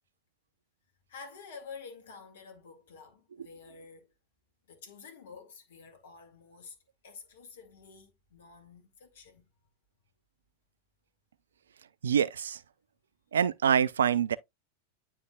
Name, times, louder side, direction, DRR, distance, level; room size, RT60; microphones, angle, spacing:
voice 1, 1.1-4.1 4.7-6.8 7.0-9.5, left 5 dB, 60° left, 1.9 m, -49 dB
voice 2, 12.0-12.6 13.3-14.4, right 8 dB, 65° right, 0.4 m, -25 dB
9.5 x 4.6 x 2.3 m
figure-of-eight pair, 90°, 0 cm